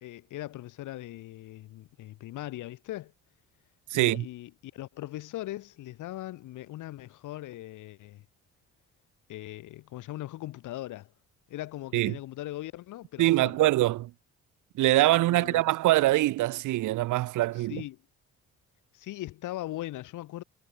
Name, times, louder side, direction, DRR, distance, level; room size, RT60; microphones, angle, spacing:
voice 1, 0.0-3.1 3.9-8.2 9.3-11.1 11.5-13.6 15.1-15.6 17.6-18.0 18.9-20.4, left 15 dB, 85° left, 1.6 m, -40 dB
voice 2, 3.9-4.3 11.9-12.2 13.2-14.1 14.8-17.8, right 17 dB, 85° right, 0.9 m, -24 dB
cardioid pair, 90°, 30 cm